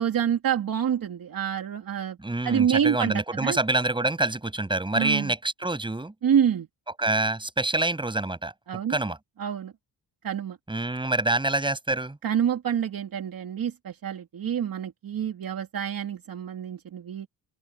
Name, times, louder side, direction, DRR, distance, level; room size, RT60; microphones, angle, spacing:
voice 1, 0.0-2.2 2.4-3.6 4.9-5.3 6.2-6.7 8.7-9.0 9.4-9.7 10.2-10.6 12.2-17.3, right 9 dB, 55° right, 2.8 m, -27 dB
voice 2, 2.2-6.1 7.0-8.5 8.9-9.2 10.7-12.2, right 2 dB, 10° right, 7.9 m, -26 dB
open air
wide cardioid pair, 165°, 41 cm